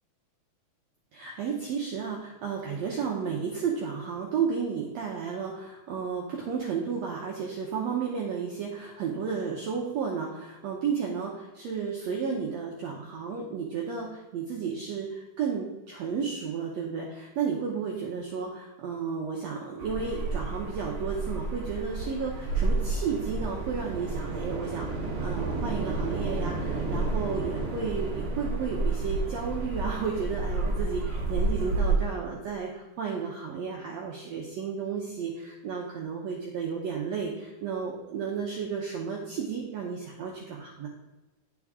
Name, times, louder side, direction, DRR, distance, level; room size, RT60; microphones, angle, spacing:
voice 1, 1.1-40.9, right 6 dB, 85° right, -1 dB, 1.5 m, -33 dB
sound 1, 19.8-32.0, right 3 dB, 65° right, 1.3 m, -30 dB
11.0 x 4.6 x 3.5 m, 1.1 s
omnidirectional pair, 4.3 m